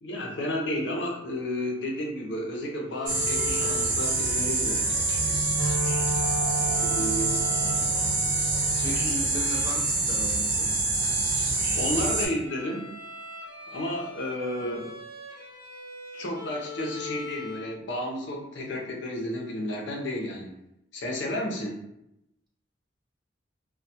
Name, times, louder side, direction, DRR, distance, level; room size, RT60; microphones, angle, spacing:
voice 1, 0.0-5.4 6.8-7.4 11.7-12.9 13.7-14.9 16.1-20.5 20.9-21.8, left 1 dB, 75° left, 0 dB, 0.5 m, -32 dB
Bowed string instrument, 2.9-17.8, left 3 dB, 50° left, 0.9 m, -42 dB
sound 1, 3.1-12.3, right 3 dB, 70° right, 0.6 m, -26 dB
Wind instrument woodwind instrument, 5.1-9.2, right 2 dB, 20° left, 0.8 m, -32 dB
voice 2, 7.6-8.0 8.8-10.8 14.6-14.9, equal, 25° right, -3 dB, 0.5 m, -37 dB
2.2 x 2.1 x 2.7 m, 0.83 s
head